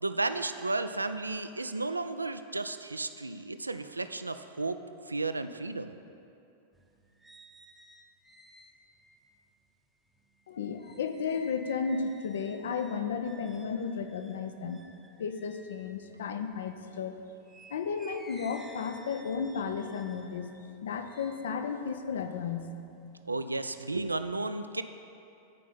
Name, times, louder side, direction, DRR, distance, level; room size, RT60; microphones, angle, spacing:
voice 1, 0.0-4.8 5.1-5.9 23.3-24.8, right 2 dB, 80° right, 10 dB, 0.3 m, -33 dB
sound 1, 6.7-16.9 17.4-22.9 23.3-23.9, right 1 dB, ahead, 0.7 m, -56 dB
voice 2, 10.5-14.8 15.2-17.1 17.7-20.5 20.8-22.7, left 6 dB, 65° left, 7 dB, 0.5 m, -33 dB
9.2 x 5.1 x 5.5 m, 2.7 s
figure-of-eight pair, 90°, 0 cm